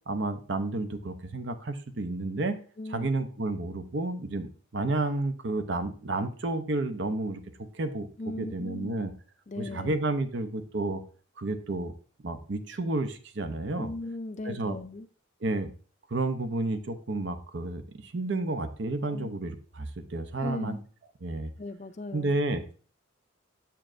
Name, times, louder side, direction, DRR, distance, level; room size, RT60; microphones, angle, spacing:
voice 1, 0.1-2.6 2.9-7.4 7.7-9.1 9.6-11.0 11.4-11.9 12.2-13.9 14.4-14.8 15.4-15.7 16.1-20.8 21.2-21.5 22.1-22.7, right 2 dB, 60° right, 9 dB, 0.7 m, -31 dB
voice 2, 2.8-3.1 8.2-9.0 9.5-10.0 13.8-15.1 19.0-19.3 20.4-20.8 21.6-22.3, left 2 dB, 35° left, 9 dB, 0.4 m, -37 dB
7.4 x 6.9 x 2.6 m, 0.40 s
head